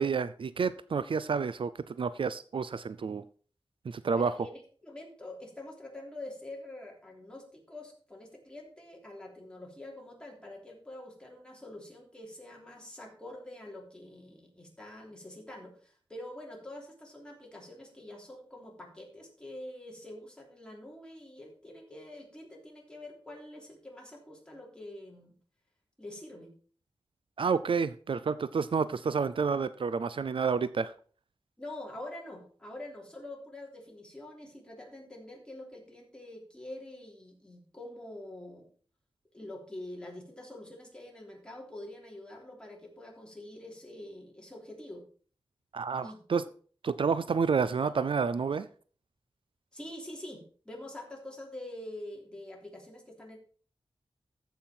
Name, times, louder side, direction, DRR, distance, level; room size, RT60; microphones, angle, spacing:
voice 1, 0.0-3.2 3.9-4.3 27.4-30.9 45.7-46.4 46.8-48.7, right 5 dB, 65° right, 15 dB, 0.4 m, -29 dB
voice 2, 4.1-25.3 26.0-26.5 31.6-38.6 39.3-45.0 46.0-46.4 47.8-47.9 49.7-53.4, left 1 dB, 10° left, -2 dB, 3.2 m, -46 dB
14.0 x 5.7 x 4.4 m, 0.43 s
wide cardioid pair, 110°, 9 cm